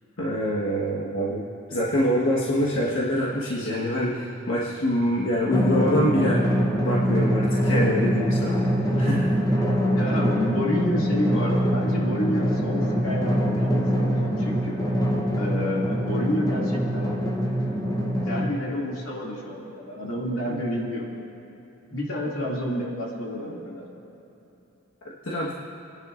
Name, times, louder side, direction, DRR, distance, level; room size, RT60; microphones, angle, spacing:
voice 1, 0.2-9.4 25.2-25.5, equal, 65° left, -6 dB, 1.5 m, -25 dB
Drum, 5.5-18.5, equal, 15° left, 0.9 m, -24 dB
voice 2, 9.9-14.8 15.4-17.1 18.2-21.1 21.9-23.8, equal, 85° left, -4 dB, 2.6 m, -29 dB
28.0 x 10.5 x 2.6 m, 3.0 s
head